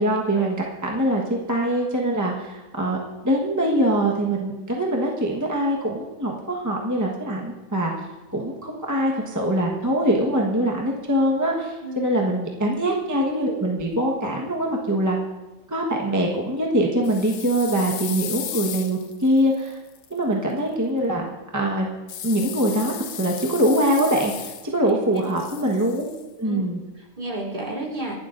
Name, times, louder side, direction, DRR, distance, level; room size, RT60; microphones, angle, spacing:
voice 1, 0.0-3.0 3.2-7.9 8.3-15.2 15.7-19.8 20.1-21.3 21.5-21.9 22.2-26.1 26.4-26.8, right 1 dB, 15° right, -1 dB, 1.3 m, -23 dB
voice 2, 11.8-12.2 24.9-25.2 26.4-26.6 27.0-28.2, right 1 dB, 30° right, -4 dB, 3.4 m, -32 dB
sound 1, 17.0-20.1 22.1-24.9 25.2-26.2, left 10 dB, 90° left, 1.2 m, -35 dB
26.5 x 11.5 x 2.6 m, 1.1 s
omnidirectional pair, 1.4 m